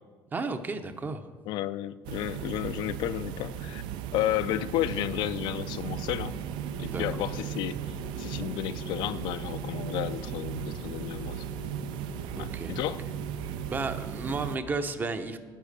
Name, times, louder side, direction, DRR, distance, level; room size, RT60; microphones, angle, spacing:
voice 1, 0.3-1.3 6.8-7.3 12.4-12.7 13.7-15.4, right 3 dB, 25° right, 9 dB, 0.7 m, -33 dB
voice 2, 1.5-3.8 4.1-6.4 6.8-11.7 12.4-13.0, left 13 dB, 75° left, 14 dB, 0.5 m, -32 dB
sound 1, 2.0-14.6, right 9 dB, 80° right, 0.6 m, -36 dB
sound 2, 6.2-14.4, left 8 dB, 30° left, 0.7 m, -49 dB
10.0 x 9.2 x 6.6 m, 1.5 s
cardioid pair, 145°, 8 cm